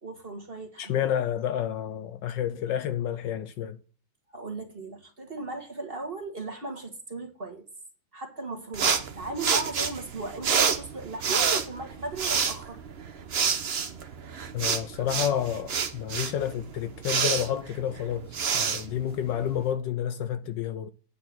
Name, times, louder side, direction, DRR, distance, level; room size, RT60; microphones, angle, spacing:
voice 1, 0.0-1.0 4.3-7.7 8.1-12.8, right 2 dB, 30° right, 1.8 m, -37 dB
voice 2, 0.8-3.8 14.5-20.9, left 10 dB, 75° left, 1.2 m, -30 dB
sound 1, 8.7-19.7, right 6 dB, 50° right, 0.8 m, -28 dB
9.6 x 4.5 x 7.6 m
omnidirectional pair, 2.2 m